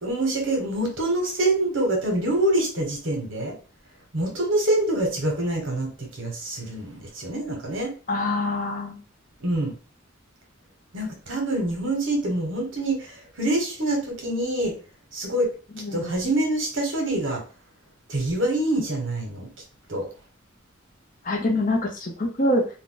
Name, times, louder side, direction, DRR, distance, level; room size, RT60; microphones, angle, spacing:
voice 1, 0.0-3.5 4.1-7.9 9.4-9.7 10.9-14.7 15.1-15.5 15.9-17.4 18.1-19.5 19.9-20.1, right 1 dB, 65° right, 1 dB, 1.0 m, -25 dB
voice 2, 8.1-9.0 15.7-16.2 21.2-22.7, left 1 dB, 40° left, 0 dB, 0.7 m, -25 dB
2.5 x 2.3 x 3.7 m, 0.37 s
head